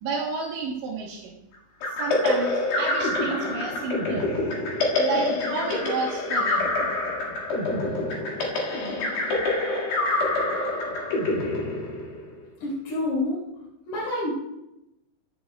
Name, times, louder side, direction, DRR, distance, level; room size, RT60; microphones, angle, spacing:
voice 1, 0.0-1.4 1.9-4.3 5.0-6.7, right 4 dB, 80° right, -3 dB, 3.4 m, -31 dB
sound 1, 1.8-12.4, left 2 dB, 60° left, 3.3 m, -26 dB
voice 2, 12.6-13.4 13.9-14.3, left 2 dB, 90° left, -7 dB, 6.5 m, -27 dB
14.5 x 10.5 x 2.2 m, 0.88 s
omnidirectional pair, 5.3 m